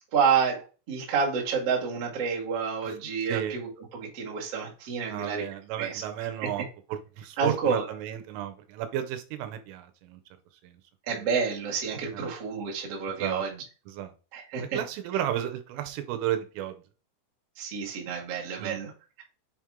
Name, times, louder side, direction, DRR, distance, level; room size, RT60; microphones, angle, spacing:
voice 1, 0.1-0.6 0.9-5.4 5.8-6.0 6.4-6.5 7.4-7.8 11.1-13.6 14.3-14.8 17.6-18.9, right 6 dB, 55° right, -2 dB, 1.7 m, -29 dB
voice 2, 3.3-3.6 5.1-10.2 10.6-10.8 11.1-11.2 12.1-12.3 13.2-13.4 13.9-14.1 14.6-16.8 18.6-18.8, right 11 dB, 80° right, 8 dB, 3.2 m, -33 dB
7.0 x 4.5 x 3.7 m, 0.34 s
omnidirectional pair, 5.8 m